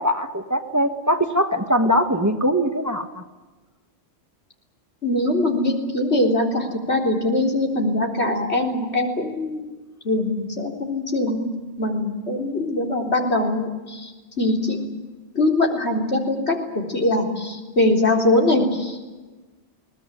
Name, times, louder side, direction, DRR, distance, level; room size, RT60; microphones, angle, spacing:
voice 1, 0.0-3.2, equal, 15° right, 7 dB, 1.4 m, -21 dB
voice 2, 5.0-9.6 10.0-11.4 11.8-14.1 14.4-14.8 15.4-19.0, left 1 dB, 75° left, 2 dB, 4.1 m, -22 dB
21.5 x 19.0 x 10.0 m, 1.2 s
omnidirectional pair, 1.1 m